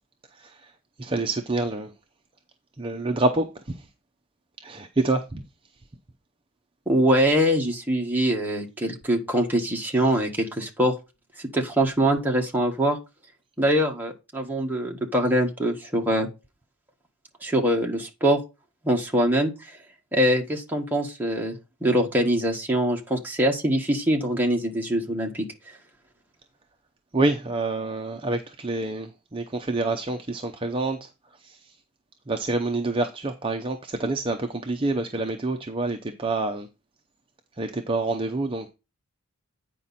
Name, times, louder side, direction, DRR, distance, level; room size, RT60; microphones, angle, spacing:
voice 1, 0.4-0.7 1.0-1.9 2.8-3.8 4.6-5.4 27.1-31.1 31.4-31.7 32.3-36.7 37.6-38.7, right 2 dB, 25° right, 0.7 m, -27 dB
voice 2, 6.9-10.9 11.5-13.0 13.6-16.3 17.4-18.4 18.8-19.5 20.1-21.5 21.8-25.4, equal, 10° right, 1.4 m, -23 dB
9.0 x 5.1 x 4.2 m
head